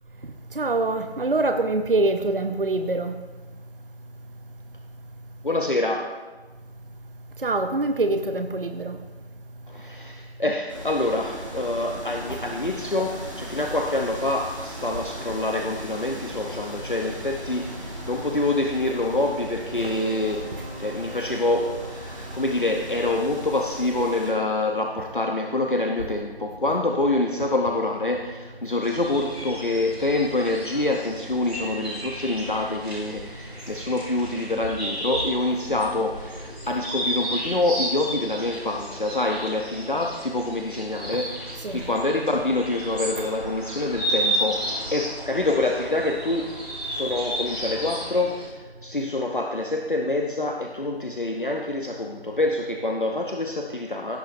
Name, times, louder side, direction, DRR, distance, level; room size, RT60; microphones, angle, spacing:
voice 1, 0.2-3.2 7.4-9.0 12.3-12.4 18.9-19.0 19.8-20.0 20.5-20.6 41.1-41.2 41.6-41.9, right 2 dB, 55° right, 0.7 m, -25 dB
voice 2, 5.4-6.1 9.7-20.5 20.8-46.6 46.8-54.2, left 2 dB, 50° left, 0.7 m, -26 dB
sound 1, 10.7-24.3, right 1 dB, 30° right, 1.7 m, -38 dB
sound 2, 19.7-25.1, left 1 dB, 70° left, 2.9 m, -44 dB
sound 3, 28.8-48.4, equal, ahead, 1.6 m, -33 dB
16.5 x 8.7 x 2.6 m
figure-of-eight pair, 170°, 33 cm